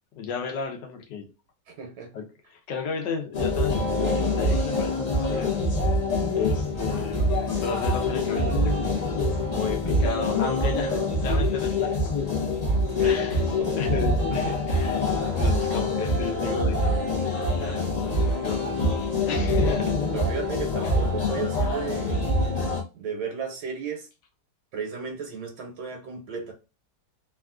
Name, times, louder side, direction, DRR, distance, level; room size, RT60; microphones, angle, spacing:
voice 1, 0.2-1.3 2.1-5.5 6.3-7.3 7.6-9.0 9.5-12.5 13.0-15.0 15.3-17.8 18.4-19.0 19.3-20.0 20.8-21.0, left 5 dB, 75° left, 1.4 m, -33 dB
voice 2, 1.7-2.1 6.2-6.5 13.0-13.8 19.6-19.7 20.1-22.2 22.9-24.1 24.7-26.5, right 5 dB, 80° right, 1.4 m, -35 dB
sound 1, 3.3-22.8, left 1 dB, 55° left, 0.4 m, -25 dB
3.5 x 2.4 x 2.3 m
omnidirectional pair, 1.9 m